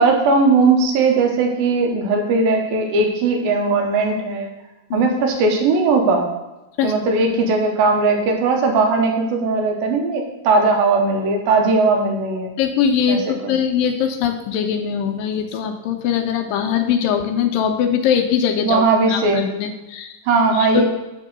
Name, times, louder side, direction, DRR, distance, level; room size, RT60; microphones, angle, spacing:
voice 1, 0.0-4.5 4.9-6.3 6.8-12.5 13.1-13.5 18.6-19.5 20.3-20.8, right 3 dB, 85° right, 3 dB, 3.0 m, -18 dB
voice 2, 12.6-18.8 19.1-20.1 20.5-20.8, left 8 dB, 80° left, 5 dB, 2.4 m, -21 dB
9.2 x 3.7 x 6.7 m, 1.0 s
omnidirectional pair, 4.1 m